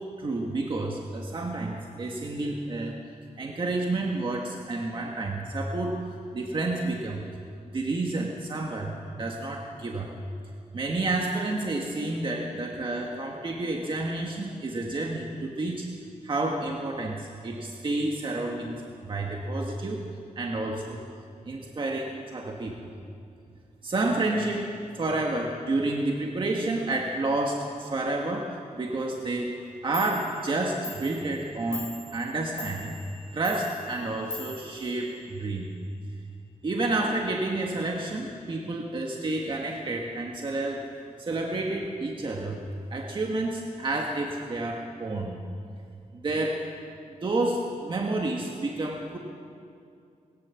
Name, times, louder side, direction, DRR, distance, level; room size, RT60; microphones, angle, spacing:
voice 1, 0.2-3.0 3.4-6.0 6.3-7.2 7.7-10.1 10.7-15.9 16.2-20.1 20.3-21.0 21.4-22.9 23.8-29.5 29.8-33.0 33.3-35.7 36.6-40.8 41.2-42.6 42.9-45.4 46.1-46.7 47.2-49.2, right 2 dB, 40° right, 0 dB, 1.6 m, -30 dB
Clock, 29.6-29.7 29.9-35.6, left 2 dB, 20° left, 6.9 m, -43 dB
21.5 x 17.0 x 7.1 m, 2.4 s
wide cardioid pair, 130°, 13 cm